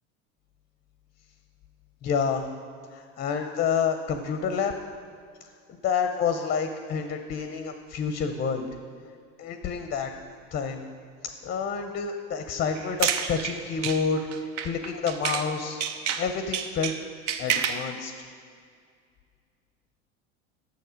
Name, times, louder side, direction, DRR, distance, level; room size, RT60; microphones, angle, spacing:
voice 1, 2.0-2.4 2.9-4.7 5.8-8.7 9.4-10.1 10.5-10.8 11.2-15.8 16.2-16.9 17.4-18.1, left 6 dB, 25° left, 7 dB, 0.5 m, -28 dB
sound 1, 12.7-15.5 15.8-17.9, right 8 dB, 75° right, 0.6 m, -30 dB
6.6 x 6.5 x 5.0 m, 2.2 s
hypercardioid pair, 80°, 37 cm